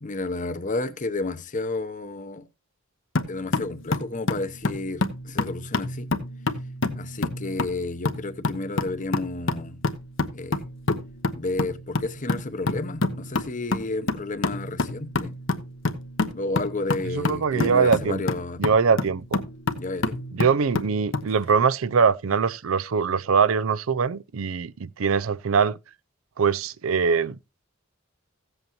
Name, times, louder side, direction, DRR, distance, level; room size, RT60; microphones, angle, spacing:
voice 1, 0.0-2.5 3.3-6.1 6.9-9.8 10.3-10.6 11.4-15.3 16.3-18.6 19.8-20.2, left 2 dB, 40° left, 0.8 m, -31 dB
sound 1, 3.1-21.3, left 2 dB, 70° left, 1.0 m, -29 dB
voice 2, 17.1-18.2 18.6-19.4 20.3-25.8 26.4-27.4, right 5 dB, 85° right, 0.5 m, -22 dB
15.5 x 7.9 x 2.9 m
head